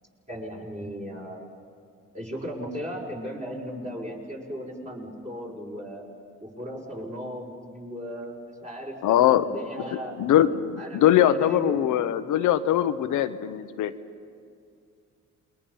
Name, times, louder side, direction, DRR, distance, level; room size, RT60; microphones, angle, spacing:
voice 1, 0.3-1.5 2.1-6.0 6.4-10.2 10.8-11.9, equal, 25° right, -1 dB, 5.8 m, -36 dB
voice 2, 9.0-9.5 10.2-13.9, left 11 dB, 85° left, 11 dB, 1.0 m, -21 dB
28.5 x 22.5 x 5.7 m, 2.3 s
cardioid pair, 90°, 30 cm